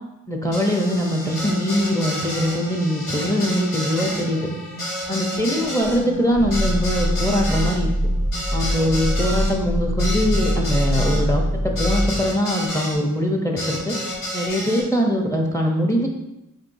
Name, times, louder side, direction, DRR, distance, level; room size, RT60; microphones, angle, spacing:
voice 1, 0.3-4.4 5.1-7.9 8.5-13.9 14.3-16.1, equal, 10° left, 1 dB, 0.8 m, -22 dB
sound 1, 0.5-13.0 13.6-14.8, equal, 85° left, 1.6 m, -30 dB
Growling, 5.8-12.2, equal, 35° left, 1.1 m, -23 dB
5.1 x 3.6 x 2.7 m, 0.91 s
cardioid pair, 45°, 32 cm